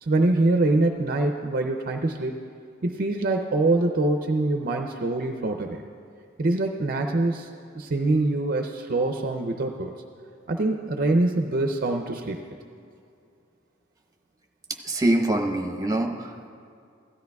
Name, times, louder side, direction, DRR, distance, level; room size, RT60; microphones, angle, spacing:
voice 1, 0.0-2.3 2.8-5.8 6.4-7.5 7.7-9.9 10.5-12.4, right 2 dB, 45° right, 4 dB, 0.5 m, -24 dB
voice 2, 14.8-16.5, right 1 dB, 20° right, 3 dB, 0.9 m, -24 dB
16.5 x 13.0 x 2.3 m, 2.4 s
head